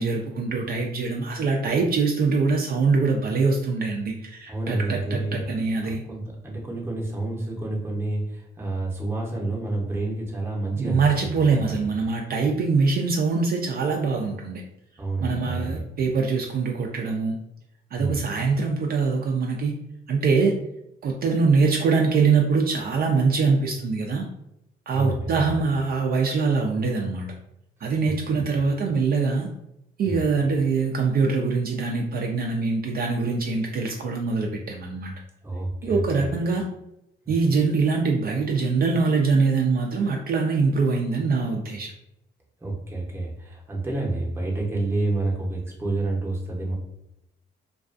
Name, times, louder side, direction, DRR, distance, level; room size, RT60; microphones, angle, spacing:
voice 1, 0.0-6.0 10.7-14.6 15.2-17.3 17.9-19.8 20.1-20.6 21.0-24.3 24.9-27.3 27.8-29.5 30.0-35.1 35.8-36.7 37.3-41.9, right 4 dB, 50° right, 1 dB, 0.4 m, -23 dB
voice 2, 4.5-5.4 5.8-11.8 15.0-15.8 17.9-18.2 24.9-25.5 28.0-28.1 30.0-30.2 35.4-36.3 37.2-37.4 42.6-46.7, right 2 dB, 10° right, -3 dB, 0.7 m, -29 dB
2.3 x 2.3 x 2.4 m, 0.81 s
cardioid pair, 90°, 20 cm